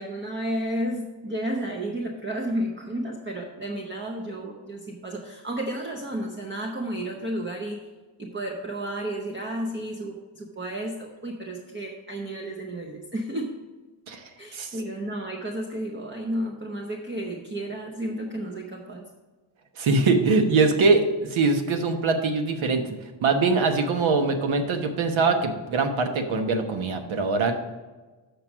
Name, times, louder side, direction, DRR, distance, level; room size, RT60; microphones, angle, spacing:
voice 1, 0.0-7.8 8.2-13.6 14.4-19.1, right 1 dB, 25° right, 1 dB, 0.7 m, -32 dB
voice 2, 19.8-22.8 23.2-27.8, right 3 dB, 80° right, 6 dB, 1.2 m, -22 dB
7.6 x 5.2 x 6.1 m, 1.2 s
wide cardioid pair, 145°, 47 cm